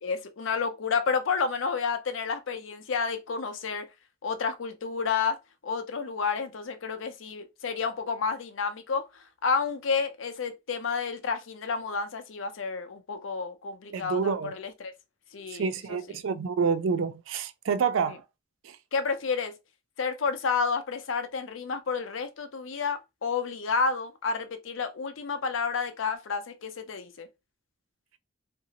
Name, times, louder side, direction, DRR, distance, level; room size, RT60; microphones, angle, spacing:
voice 1, 0.0-3.9 4.2-5.4 5.6-9.1 9.4-14.9 15.3-16.2 18.9-19.5 20.0-27.3, left 5 dB, 85° left, 0.6 m, -30 dB
voice 2, 13.9-14.5 15.5-18.2 18.6-18.8, right 5 dB, 85° right, 0.4 m, -28 dB
2.8 x 2.6 x 2.8 m
head